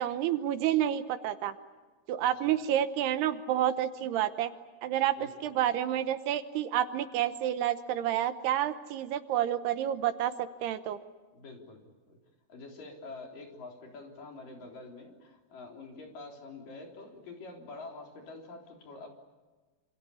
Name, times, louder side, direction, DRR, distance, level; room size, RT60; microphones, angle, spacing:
voice 1, 0.0-1.5 2.1-4.5 4.8-5.1 5.4-11.0, right 11 dB, 75° right, 11 dB, 2.9 m, -29 dB
voice 2, 2.2-2.5 5.2-5.5 11.3-12.2 12.5-19.1, left 3 dB, 50° left, 2 dB, 5.2 m, -47 dB
27.5 x 27.5 x 7.1 m, 1.3 s
omnidirectional pair, 4.9 m